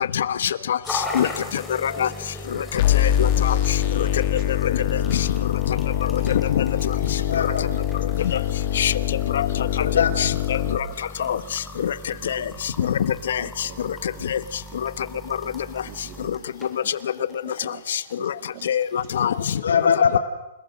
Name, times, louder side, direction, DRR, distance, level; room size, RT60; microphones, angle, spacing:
voice 1, 0.1-0.8 1.1-1.3 1.5-2.1 3.0-3.5 6.5-6.7 8.2-8.4 8.8-8.9 9.3-9.5 10.2-10.8 11.2-11.4 11.8-11.9 12.3-12.4 12.8-12.9 13.3-13.4 14.3-14.4 14.8-14.9 17.9-18.3 18.7-19.3 20.1-20.2, left 9 dB, 65° left, 15 dB, 1.1 m, -24 dB
sound 1, 0.8-19.6, left 1 dB, 5° left, 2.9 m, -39 dB
sound 2, 2.8-10.8, left 11 dB, 40° left, 1.3 m, -23 dB
voice 2, 7.3-7.7 9.8-10.3 19.4-20.2, left 7 dB, 85° left, 5 dB, 3.7 m, -22 dB
voice 3, 13.6-14.3 15.9-16.3 17.7-17.8 18.2-18.3 18.5-18.6, right 13 dB, 35° right, 9 dB, 2.3 m, -42 dB
29.0 x 18.5 x 6.5 m, 0.95 s
hypercardioid pair, 165°, 0 cm